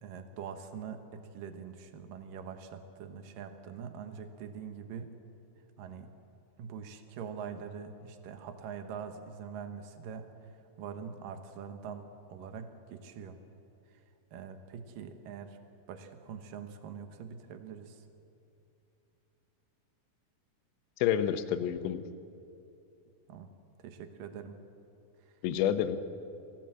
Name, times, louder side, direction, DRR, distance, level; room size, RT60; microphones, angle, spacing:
voice 1, 0.0-5.1 5.8-6.1 6.6-10.3 10.8-13.4 14.3-15.6 15.9-18.0 23.3-23.5 23.8-24.6, right 7 dB, 70° right, 7 dB, 2.1 m, -43 dB
voice 2, 21.0-22.0 25.4-26.0, left 10 dB, 75° left, 10 dB, 3.0 m, -28 dB
27.5 x 16.5 x 7.7 m, 2.7 s
omnidirectional pair, 5.7 m